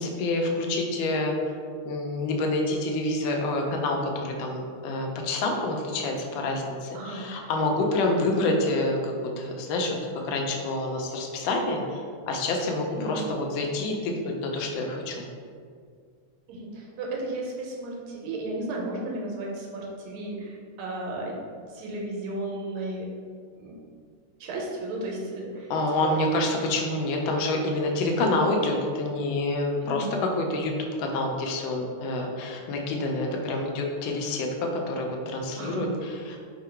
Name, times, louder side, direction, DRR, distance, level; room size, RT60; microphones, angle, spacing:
voice 1, 0.0-1.3 1.9-10.0 10.2-15.2 25.7-34.5 34.7-36.4, left 2 dB, 75° left, 1 dB, 1.2 m, -27 dB
voice 2, 6.9-7.3 12.9-13.2 16.5-21.4 21.7-23.1 23.6-23.8 24.4-25.7 26.0-26.1 29.8-30.2 35.6-35.9, right 2 dB, 85° right, -2 dB, 1.5 m, -34 dB
3.7 x 2.2 x 4.3 m, 2.1 s
omnidirectional pair, 2.3 m